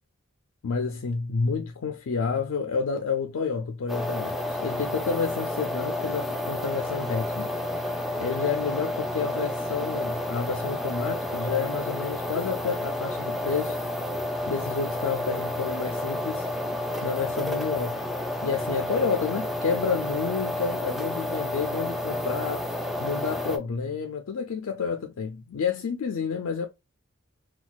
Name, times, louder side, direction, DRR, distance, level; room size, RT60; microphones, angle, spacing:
voice 1, 0.6-7.5 7.7-13.8 14.5-16.5 17.0-18.0 18.4-22.6 23.0-26.7, left 5 dB, 85° left, 0.4 m, -30 dB
sound 1, 3.9-23.6, left 1 dB, ahead, 0.3 m, -30 dB
4.0 x 2.3 x 2.3 m
head